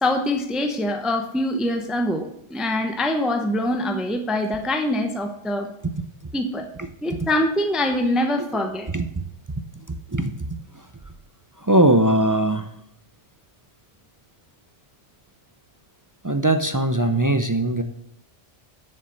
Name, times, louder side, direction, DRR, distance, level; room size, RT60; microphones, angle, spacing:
voice 1, 0.0-5.7 6.3-6.7 7.0-8.9, left 1 dB, ahead, 5 dB, 0.8 m, -24 dB
voice 2, 8.9-9.6 9.9-10.3 10.7-10.9 11.6-12.7 16.2-17.8, right 1 dB, 25° right, 8 dB, 0.4 m, -21 dB
7.2 x 6.7 x 7.7 m, 0.74 s
omnidirectional pair, 1.2 m